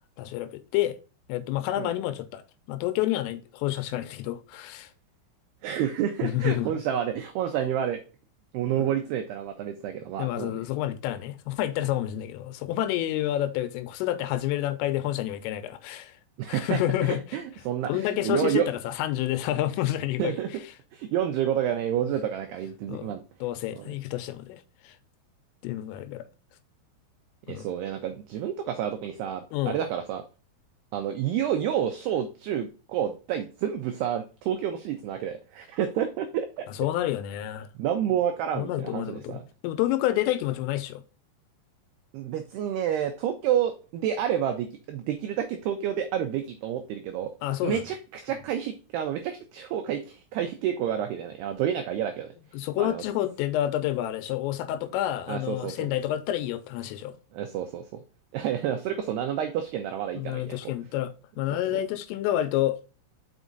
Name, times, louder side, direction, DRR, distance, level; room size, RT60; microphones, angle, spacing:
voice 1, 0.2-1.0 1.3-2.4 2.7-4.9 6.2-6.7 8.8-8.9 10.2-16.1 16.5-17.2 17.9-20.3 22.9-25.0 25.6-26.3 27.5-27.7 29.5-29.8 36.8-37.7 38.6-39.4 39.6-41.0 47.4-47.8 52.5-57.2 60.1-62.8, left 13 dB, 85° left, 3.3 m, -29 dB
voice 2, 5.6-8.0 8.5-10.7 16.4-18.7 20.2-20.6 20.9-23.2 23.8-23.9 27.5-30.2 30.9-36.7 37.8-39.4 42.1-47.3 47.6-52.3 52.8-53.0 55.3-55.9 57.3-58.0 58.3-60.7 61.7-61.8, right 10 dB, 90° right, 2.3 m, -29 dB
6.1 x 5.5 x 3.9 m
omnidirectional pair, 5.7 m